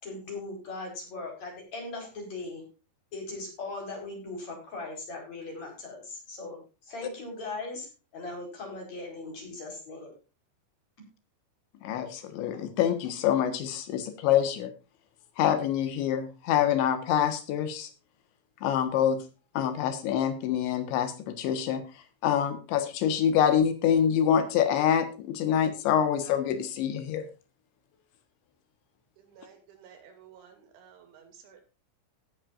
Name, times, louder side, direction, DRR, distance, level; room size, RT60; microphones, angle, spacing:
voice 1, 0.0-2.6 3.1-7.9 8.1-10.1, left 2 dB, 40° left, 2 dB, 5.9 m, -39 dB
voice 2, 11.8-14.7 15.4-17.9 18.6-19.2 19.6-21.8 22.2-27.3, left 9 dB, 80° left, 10 dB, 3.8 m, -26 dB
voice 3, 29.2-31.6, right 7 dB, 85° right, 6 dB, 5.0 m, -54 dB
17.5 x 9.0 x 2.6 m, 0.32 s
omnidirectional pair, 5.2 m